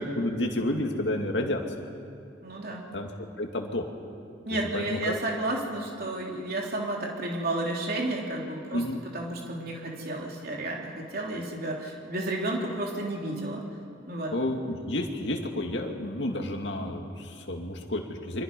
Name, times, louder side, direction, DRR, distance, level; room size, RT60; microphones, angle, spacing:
voice 1, 0.0-1.6 2.9-3.1 3.4-3.8 4.7-5.1 8.7-9.0 14.3-18.4, left 1 dB, 65° left, 2 dB, 2.4 m, -30 dB
voice 2, 2.4-2.9 4.5-8.8 9.1-13.6 14.1-14.3, right 1 dB, 50° right, -2 dB, 3.4 m, -32 dB
28.5 x 25.0 x 5.4 m, 2.4 s
head